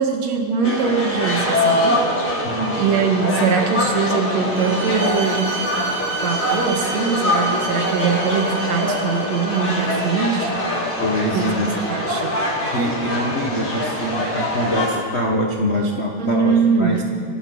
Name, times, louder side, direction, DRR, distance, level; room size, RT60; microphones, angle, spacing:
voice 1, 0.0-2.0 2.8-5.6 6.2-10.5 11.3-12.3 16.2-17.0, right 5 dB, 65° right, 3 dB, 2.7 m, -21 dB
sound 1, 0.6-14.9, left 1 dB, 25° left, 3.3 m, -23 dB
voice 2, 2.4-2.8 11.0-11.7 12.7-17.0, equal, 80° left, 0 dB, 0.5 m, -24 dB
Bowed string instrument, 4.5-10.0, right 3 dB, 80° right, 3.1 m, -31 dB
28.0 x 12.0 x 4.0 m, 2.4 s
omnidirectional pair, 3.4 m